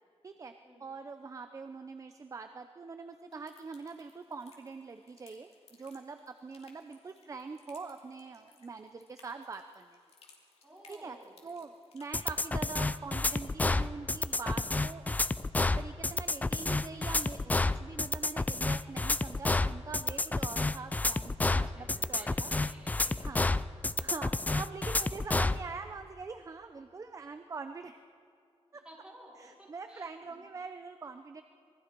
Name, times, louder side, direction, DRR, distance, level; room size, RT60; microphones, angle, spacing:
voice 1, 0.8-10.0 10.9-11.2 11.4-15.2 15.8-22.5 23.2-23.4 24.0-28.0 28.7-28.8 29.4-31.4, right 4 dB, 30° right, 8 dB, 0.7 m, -44 dB
sound 1, 3.3-12.5, left 4 dB, 70° left, 3.0 m, -63 dB
voice 2, 10.6-11.4 21.4-23.3 24.0-24.1 28.7-30.4, equal, 10° right, -5 dB, 5.2 m, -54 dB
sound 2, 12.1-25.6, left 2 dB, 15° left, 0.4 m, -29 dB
26.5 x 21.5 x 4.6 m, 2.4 s
wide cardioid pair, 150°, 11 cm